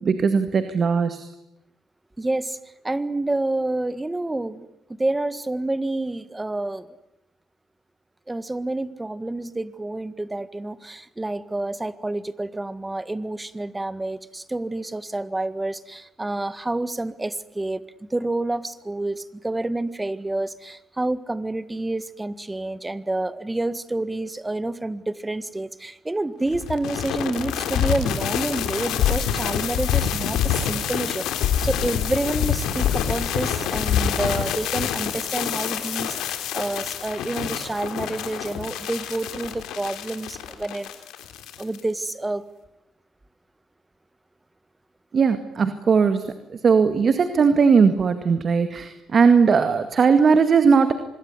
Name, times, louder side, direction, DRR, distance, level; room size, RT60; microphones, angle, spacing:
voice 1, 0.0-1.3 45.1-46.2 46.6-50.9, right 5 dB, 45° right, 9 dB, 2.0 m, -18 dB
voice 2, 2.2-2.6 2.8-4.7 5.0-6.9 8.3-40.9 41.6-42.5, right 2 dB, 15° right, 14 dB, 1.7 m, -28 dB
sound 1, 26.5-41.8, left 9 dB, 90° left, 3.6 m, -26 dB
26.0 x 21.5 x 9.8 m, 0.87 s
cardioid pair, 90°, 0 cm